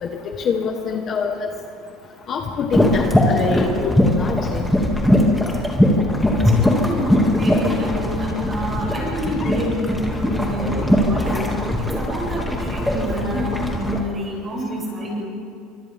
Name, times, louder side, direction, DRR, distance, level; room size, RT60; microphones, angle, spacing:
voice 1, 0.0-1.5 2.3-4.7 9.4-9.5, left 5 dB, 35° left, 3 dB, 1.5 m, -25 dB
sound 1, 2.7-14.0, left 1 dB, 5° left, 2.6 m, -20 dB
voice 2, 6.3-15.3, equal, 25° right, -3 dB, 7.7 m, -28 dB
29.0 x 25.5 x 3.8 m, 2.4 s
cardioid pair, 155°, 0 cm